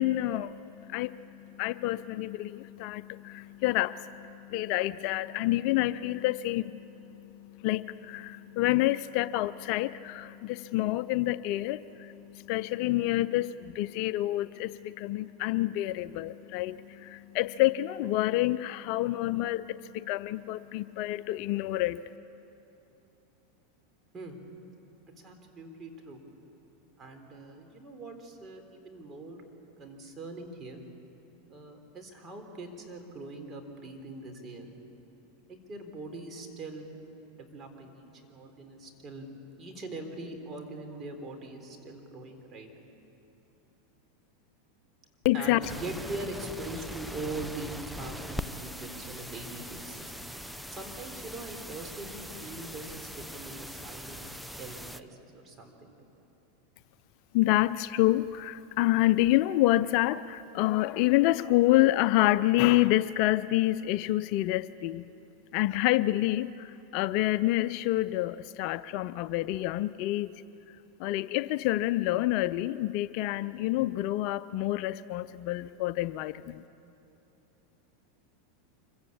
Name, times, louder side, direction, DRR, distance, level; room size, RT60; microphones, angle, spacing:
voice 1, 0.0-22.2 45.2-45.6 57.3-65.1 65.5-70.4 71.0-76.6, left 16 dB, 55° left, 15 dB, 0.5 m, -28 dB
voice 2, 25.2-26.2 27.0-29.4 29.8-30.8 31.5-34.7 35.5-36.9 37.3-39.3 39.6-42.7 45.3-50.1 50.7-54.3 54.5-56.0, right 2 dB, 30° right, 4 dB, 3.7 m, -42 dB
sound 1, 45.6-55.0, equal, ahead, 0.8 m, -41 dB
25.0 x 15.5 x 8.6 m, 2.9 s
hypercardioid pair, 100°, 0 cm